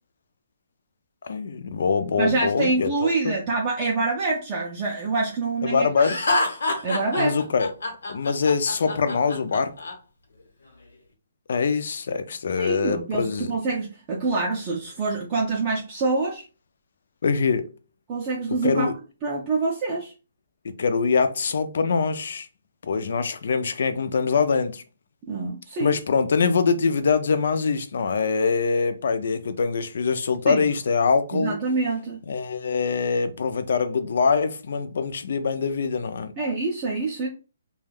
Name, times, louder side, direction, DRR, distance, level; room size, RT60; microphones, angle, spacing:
voice 1, 1.2-3.3 5.6-6.2 7.2-7.7 8.1-9.7 11.5-13.5 17.2-17.7 18.6-19.0 20.6-22.5 22.8-24.8 25.8-31.6 32.3-36.3, left 5 dB, 50° left, 0.4 m, -24 dB
voice 2, 2.2-6.1 6.8-7.4 12.6-16.4 18.1-18.9 19.2-20.1 25.3-26.0 30.5-30.7 31.3-32.2 36.4-37.3, right 3 dB, 20° right, 0.4 m, -26 dB
Laughter, 6.0-9.9, left 2 dB, 75° left, 0.9 m, -27 dB
2.3 x 2.2 x 3.3 m
hypercardioid pair, 175°, 0 cm